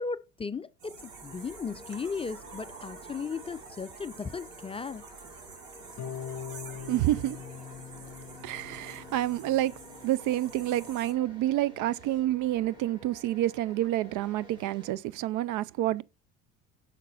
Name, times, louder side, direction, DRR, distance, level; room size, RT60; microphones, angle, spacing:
voice 1, 0.0-5.0, left 5 dB, 15° left, 0.4 m, -36 dB
sound 1, 0.8-11.1, right 4 dB, 90° right, 1.6 m, -48 dB
sound 2, 1.0-14.9, left 1 dB, 10° right, 3.6 m, -53 dB
Harp, 6.0-12.0, left 9 dB, 45° left, 0.9 m, -44 dB
voice 2, 6.9-7.4 8.4-9.7 10.0-16.0, right 14 dB, 55° right, 0.5 m, -28 dB
6.6 x 5.3 x 3.9 m
hypercardioid pair, 80°, 37 cm